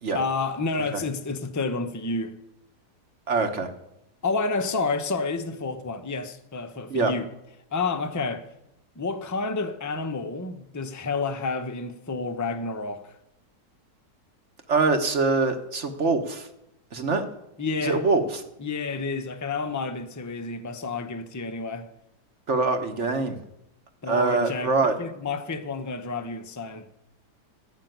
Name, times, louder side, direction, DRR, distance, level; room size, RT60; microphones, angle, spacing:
voice 1, 0.1-2.3 4.2-7.3 7.7-8.4 9.0-13.2 17.6-18.0 18.6-21.9 24.0-24.7 25.0-26.9, left 3 dB, 20° left, 0.4 m, -30 dB
voice 2, 3.3-3.7 6.9-7.1 14.7-16.5 16.9-17.2 17.8-18.4 22.5-23.4 24.1-24.9, right 3 dB, 45° right, 1.3 m, -24 dB
13.0 x 5.8 x 9.1 m
omnidirectional pair, 1.8 m